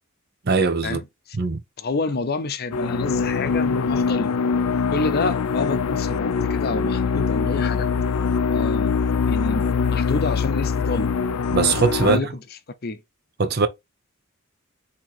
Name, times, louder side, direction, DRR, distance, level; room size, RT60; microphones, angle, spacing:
voice 1, 0.4-1.0 1.4-1.6 11.5-12.2 13.4-13.7, right 4 dB, 45° right, 0.6 m, -20 dB
voice 2, 1.8-4.3 4.9-7.9 8.5-11.1 12.0-12.3 12.8-13.0, left 3 dB, 45° left, 0.6 m, -28 dB
sound 1, 2.7-12.2, left 5 dB, 90° left, 0.4 m, -23 dB
4.6 x 2.9 x 4.0 m
head